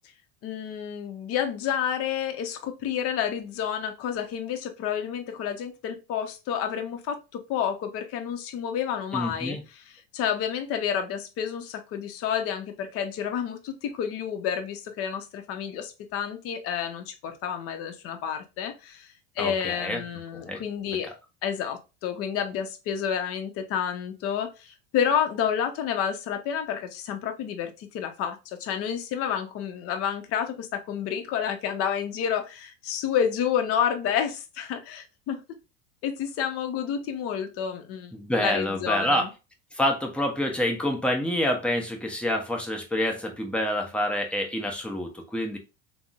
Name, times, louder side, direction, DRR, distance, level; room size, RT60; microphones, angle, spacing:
voice 1, 0.4-9.6 10.1-21.1 21.4-35.4 36.0-39.3, left 8 dB, 45° left, 0.7 m, -30 dB
voice 2, 9.1-9.6 19.4-20.0 20.3-20.6 21.0-21.1 38.1-39.3 39.7-45.6, left 1 dB, 5° left, 0.6 m, -27 dB
3.6 x 2.1 x 2.2 m
supercardioid pair, 110°, 34 cm